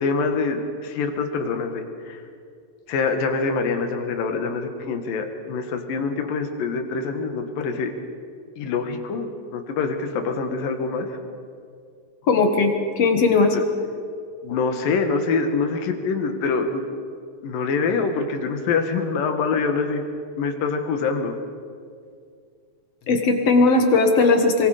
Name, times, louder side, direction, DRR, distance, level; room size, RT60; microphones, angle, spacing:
voice 1, 0.0-2.2 2.9-7.9 8.6-11.2 13.5-13.6 14.4-16.8 17.4-20.0 20.4-21.3, left 4 dB, 80° left, 6 dB, 3.2 m, -25 dB
voice 2, 12.3-13.6 23.1-24.7, left 3 dB, 55° left, 5 dB, 2.3 m, -18 dB
24.0 x 22.5 x 5.0 m, 2.3 s
omnidirectional pair, 3.9 m